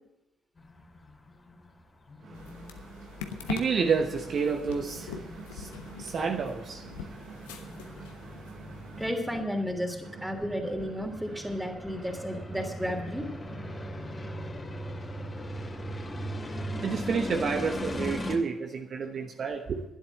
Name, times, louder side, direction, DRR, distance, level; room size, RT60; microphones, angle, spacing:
sound 1, 0.6-18.4, equal, 30° left, 2.6 m, -40 dB
voice 1, 2.2-9.0 10.1-10.4 11.3-11.4 11.9-12.0 12.3-12.4 13.7-13.9 16.8-19.8, right 5 dB, 50° right, 1.0 m, -32 dB
sound 2, 2.3-9.1, left 7 dB, 75° left, 1.0 m, -43 dB
voice 2, 9.0-13.3, equal, 5° right, 3.2 m, -33 dB
12.0 x 10.5 x 7.8 m
figure-of-eight pair, 45°, 0 cm